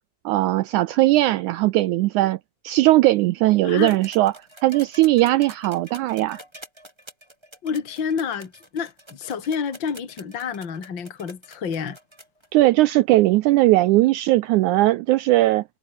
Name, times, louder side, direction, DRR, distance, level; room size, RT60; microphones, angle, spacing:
voice 1, 0.3-2.4 2.6-4.3 4.6-6.4 12.5-15.6, right 17 dB, 85° right, 1.8 m, -19 dB
voice 2, 3.6-4.0 7.6-12.0, left 6 dB, 35° left, 3.1 m, -29 dB
sound 1, 3.8-12.5 13.7-13.8, right 1 dB, 5° right, 7.1 m, -46 dB
omnidirectional pair, 4.0 m